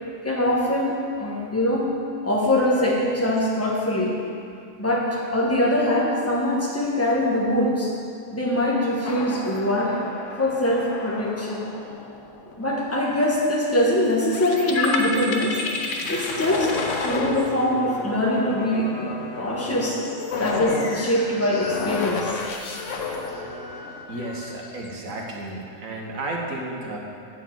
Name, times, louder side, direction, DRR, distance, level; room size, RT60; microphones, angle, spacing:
voice 1, 0.2-1.9 2.2-4.2 4.8-7.9 8.3-10.0 10.4-11.7 12.6-15.6 16.1-16.7 17.0-20.0 20.4-22.4, left 1 dB, 10° left, -3 dB, 1.3 m, -23 dB
sound 1, 9.0-25.4, left 3 dB, 65° left, 1.2 m, -31 dB
voice 2, 24.1-27.0, right 2 dB, 70° right, -1 dB, 1.6 m, -32 dB
10.0 x 4.6 x 7.5 m, 2.4 s
omnidirectional pair, 1.5 m